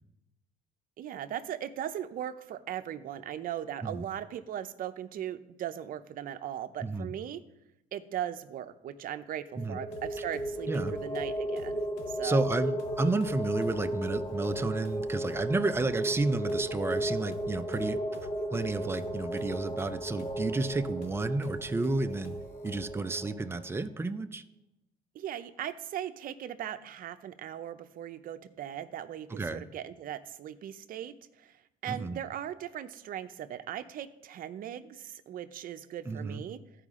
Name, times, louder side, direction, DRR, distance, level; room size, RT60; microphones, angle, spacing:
voice 1, 1.0-7.4 7.9-11.8 12.1-12.4 25.1-31.6 31.8-36.6, right 10 dB, 55° right, 9 dB, 0.6 m, -38 dB
voice 2, 6.8-7.1 9.6-9.8 10.7-10.9 12.2-18.0 18.5-22.4 22.6-24.4 29.3-29.6 31.9-32.2 36.1-36.4, right 3 dB, 15° right, 9 dB, 0.5 m, -31 dB
sound 1, 9.5-23.8, right 1 dB, 35° left, 1.0 m, -35 dB
sound 2, 9.9-23.1, left 4 dB, 90° left, 1.0 m, -51 dB
14.5 x 5.0 x 3.7 m, 0.87 s
cardioid pair, 110°, 17 cm